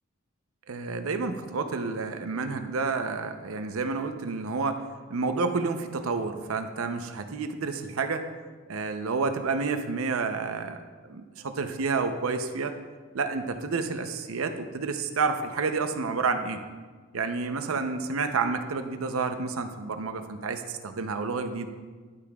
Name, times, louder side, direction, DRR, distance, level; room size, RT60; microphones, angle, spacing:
voice 1, 0.7-4.8 5.1-8.3 8.7-10.8 11.1-12.7 13.1-16.6 17.1-21.7, right 4 dB, 80° right, 8 dB, 0.6 m, -29 dB
10.5 x 8.4 x 2.3 m, 1.4 s
head